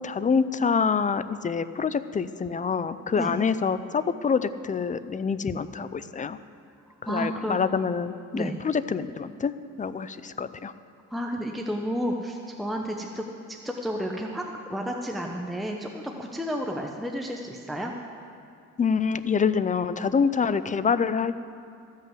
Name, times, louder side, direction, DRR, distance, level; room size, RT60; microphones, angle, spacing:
voice 1, 0.0-6.4 7.0-9.5 9.8-10.7 18.8-21.3, left 6 dB, 25° left, 13 dB, 0.4 m, -26 dB
voice 2, 7.0-7.6 8.3-8.5 11.1-17.9, equal, ahead, 1 dB, 0.8 m, -31 dB
14.0 x 5.6 x 7.8 m, 2.4 s
cardioid pair, 90°, 30 cm